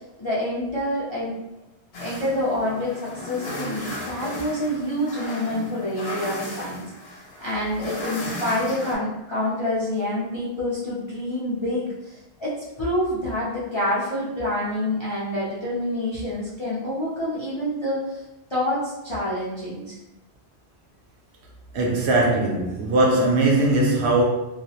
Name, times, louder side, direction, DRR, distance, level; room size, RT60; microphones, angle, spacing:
voice 1, 0.2-1.3 2.0-6.8 7.4-18.2 18.5-20.0, left 1 dB, 40° left, 0.4 m, -27 dB
sound 1, 1.9-9.0, left 1 dB, 70° left, 0.8 m, -35 dB
voice 2, 21.7-24.2, right 2 dB, 75° right, 0.9 m, -20 dB
2.4 x 2.0 x 2.7 m
omnidirectional pair, 1.1 m